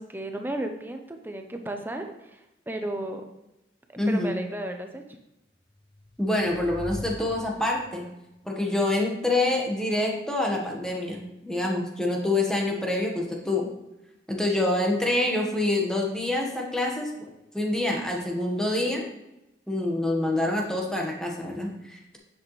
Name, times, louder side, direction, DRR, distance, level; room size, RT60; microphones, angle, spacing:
voice 1, 0.0-2.4 2.7-3.2 3.9-5.0, right 1 dB, 10° right, 5 dB, 0.7 m, -34 dB
voice 2, 4.0-4.4 6.2-8.0 8.4-13.7 14.3-17.3 17.5-19.0 19.7-22.2, left 2 dB, 5° left, 0 dB, 1.4 m, -26 dB
sound 1, 5.8-8.1, left 1 dB, 25° left, 0.6 m, -41 dB
9.3 x 7.6 x 3.3 m, 0.92 s
head